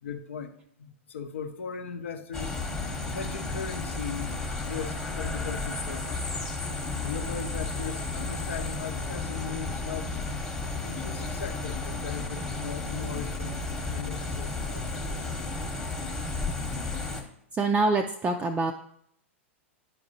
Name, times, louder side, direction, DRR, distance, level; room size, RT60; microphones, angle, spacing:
voice 1, 0.0-2.6 3.1-6.2 7.0-10.2 10.8-15.3, left 6 dB, 70° left, 9 dB, 0.7 m, -38 dB
sound 1, 2.3-17.2, left 3 dB, 10° left, 1.0 m, -33 dB
voice 2, 17.5-18.7, right 3 dB, 15° right, 3 dB, 0.4 m, -26 dB
9.8 x 4.7 x 2.7 m, 0.70 s
figure-of-eight pair, 100°, 7 cm